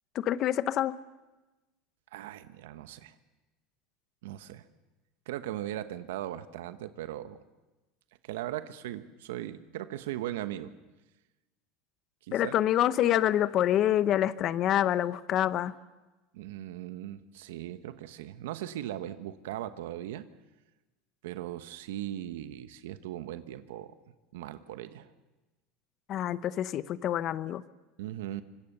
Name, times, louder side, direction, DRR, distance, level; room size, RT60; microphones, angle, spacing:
voice 1, 0.1-1.0 12.3-15.7 26.1-27.6, left 12 dB, 40° left, 16 dB, 0.8 m, -26 dB
voice 2, 2.1-3.1 4.2-4.7 5.3-7.4 8.2-10.7 12.2-12.6 16.3-20.3 21.2-23.9 24.3-25.1 28.0-28.4, right 13 dB, 85° right, 11 dB, 1.1 m, -38 dB
25.0 x 22.5 x 6.8 m, 1.1 s
supercardioid pair, 130°, 0 cm